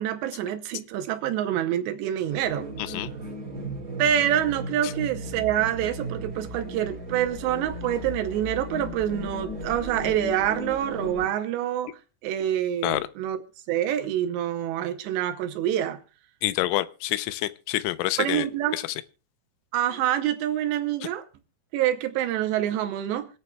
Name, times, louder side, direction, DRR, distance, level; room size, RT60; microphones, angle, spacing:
voice 1, 0.0-2.7 4.0-11.9 12.2-13.4 13.7-16.0 18.2-18.8 19.7-21.3 21.7-23.3, right 11 dB, 75° right, 2.7 m, -26 dB
sound 1, 2.3-11.3, equal, 25° right, 2.3 m, -36 dB
voice 2, 16.4-18.5 18.7-18.8, left 16 dB, 85° left, 3.1 m, -27 dB
25.5 x 8.5 x 2.3 m
omnidirectional pair, 5.5 m